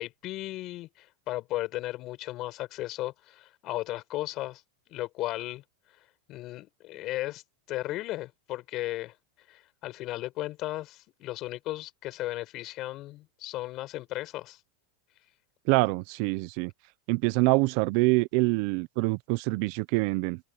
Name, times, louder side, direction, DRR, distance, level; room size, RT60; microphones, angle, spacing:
voice 1, 0.0-4.6 4.9-5.6 6.3-7.4 7.7-9.1 9.5-14.6, left 17 dB, 45° left, 5.6 m, -35 dB
voice 2, 15.7-16.7 17.1-20.4, right 25 dB, 55° right, 0.9 m, -25 dB
open air
supercardioid pair, 120°, 0 cm